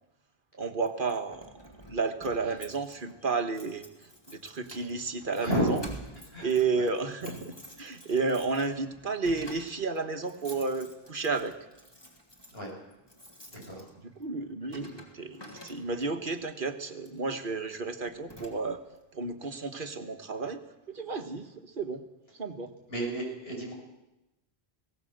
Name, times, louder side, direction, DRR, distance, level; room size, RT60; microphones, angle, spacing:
voice 1, 0.6-1.5 1.9-3.8 4.3-5.8 6.4-11.5 14.2-18.8 19.1-20.6 20.9-22.0 22.4-22.7, right 4 dB, 55° right, 7 dB, 1.6 m, -32 dB
Keys jangling, 0.9-16.2 17.0-17.2 17.7-17.8 18.1-19.0, equal, 25° left, 3.1 m, -50 dB
voice 2, 5.4-5.7 6.3-6.5 6.7-6.9 7.2-7.4 12.5-12.7 13.5-13.9 22.9-23.7, equal, 70° left, -1 dB, 7.6 m, -32 dB
19.5 x 18.0 x 7.9 m, 0.97 s
omnidirectional pair, 1.1 m